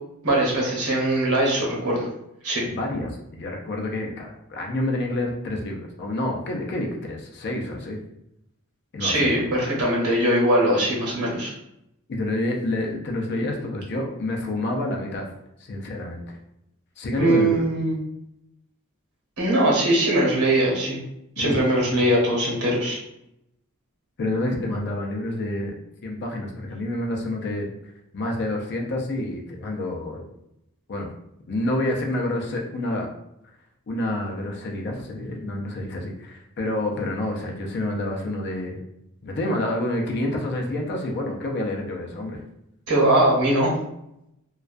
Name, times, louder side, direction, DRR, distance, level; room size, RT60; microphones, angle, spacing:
voice 1, 0.2-2.1 2.4-2.6 9.0-11.5 17.2-18.0 19.4-21.0 21.4-23.0 42.9-43.7, right 1 dB, 90° right, -3 dB, 0.9 m, -21 dB
voice 2, 2.7-8.0 8.9-9.5 12.1-15.3 15.6-16.4 17.0-17.7 21.4-22.1 24.2-25.7 26.0-30.3 30.9-31.1 31.4-33.1 33.9-38.8 39.2-42.4, left 1 dB, 50° left, 1 dB, 0.4 m, -28 dB
2.2 x 2.2 x 2.4 m, 0.81 s
head